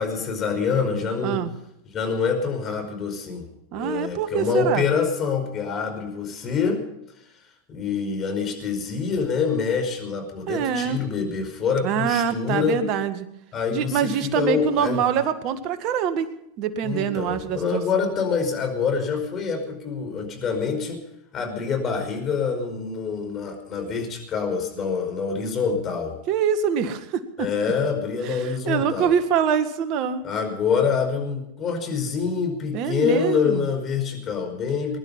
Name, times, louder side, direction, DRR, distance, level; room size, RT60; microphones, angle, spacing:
voice 1, 0.0-1.4 1.9-6.8 7.7-12.8 13.5-15.0 16.8-21.0 21.3-26.2 27.4-29.1 30.2-35.0, left 5 dB, 35° left, 4 dB, 5.2 m, -26 dB
voice 2, 3.7-4.9 10.5-11.0 11.8-13.3 13.7-16.3 16.6-18.1 26.3-27.5 28.3-30.2 32.7-33.7, right 8 dB, 50° right, 9 dB, 1.8 m, -25 dB
21.5 x 11.5 x 5.6 m, 0.79 s
hypercardioid pair, 95°, 0 cm